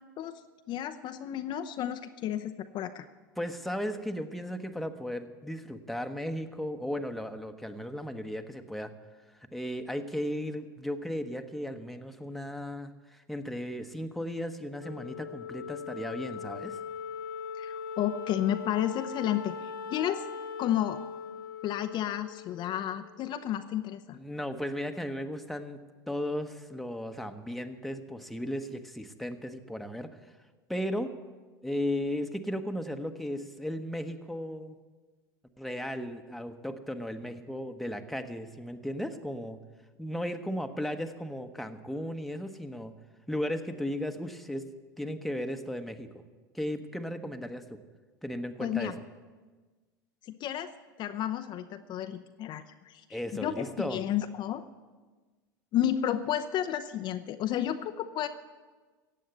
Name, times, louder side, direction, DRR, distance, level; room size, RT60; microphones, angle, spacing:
voice 1, 0.7-3.1 17.6-20.2 20.6-21.0 21.6-24.2 48.6-48.9 50.3-50.7 51.0-54.6 55.7-58.3, left 11 dB, 45° left, 8 dB, 0.7 m, -32 dB
voice 2, 3.4-8.9 9.5-16.8 24.1-25.8 26.1-30.2 30.7-31.1 31.6-34.8 35.6-39.6 40.0-42.9 43.3-44.6 45.0-46.2 46.5-47.8 48.2-48.9 53.1-54.0, equal, ahead, 6 dB, 1.1 m, -35 dB
Wind instrument woodwind instrument, 14.8-23.4, left 7 dB, 85° left, 1.3 m, -40 dB
15.5 x 8.5 x 8.0 m, 1.3 s
hypercardioid pair, 85°, 11 cm